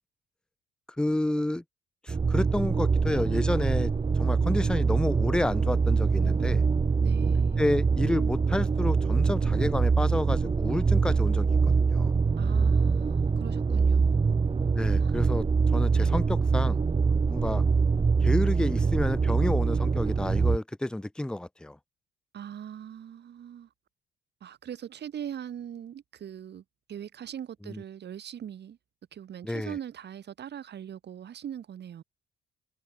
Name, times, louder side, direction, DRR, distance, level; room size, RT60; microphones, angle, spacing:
voice 1, 1.0-1.6 2.0-3.9 4.2-6.6 7.6-12.1 14.7-15.4 15.7-16.8 17.3-17.6 18.2-21.8 27.7-27.8 29.4-29.7, left 1 dB, 5° left, 0.7 m, -30 dB
sound 1, 2.1-20.6, right 5 dB, 25° right, 0.8 m, -24 dB
voice 2, 7.0-7.7 12.4-14.5 15.0-15.2 22.3-23.7 24.4-26.6 26.9-28.8 29.1-32.0, right 9 dB, 60° right, 2.2 m, -41 dB
cardioid pair, 90°, 20 cm